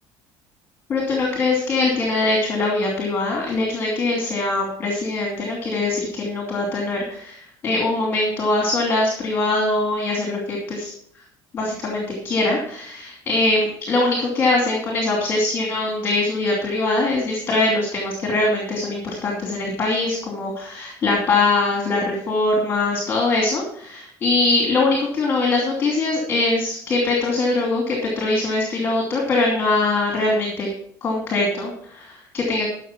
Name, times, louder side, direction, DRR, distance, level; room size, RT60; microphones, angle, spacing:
voice 1, 0.9-10.9 11.5-30.7 31.0-32.7, left 2 dB, 25° left, -1 dB, 2.7 m, -22 dB
12.5 x 6.5 x 5.9 m, 0.62 s
cardioid pair, 180°, 8 cm